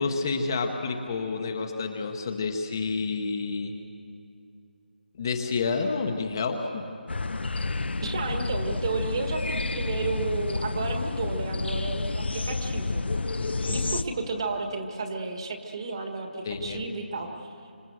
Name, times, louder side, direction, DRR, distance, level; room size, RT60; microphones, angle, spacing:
voice 1, 0.0-3.7 5.2-6.8 13.4-13.9 16.4-16.8, left 4 dB, 20° left, 4 dB, 1.0 m, -29 dB
sound 1, 7.1-14.0, left 3 dB, 80° left, 0.9 m, -30 dB
voice 2, 8.0-13.0 13.7-17.5, right 3 dB, 25° right, 5 dB, 1.5 m, -32 dB
26.0 x 24.0 x 7.9 m, 2.6 s
hypercardioid pair, 180°, 6 cm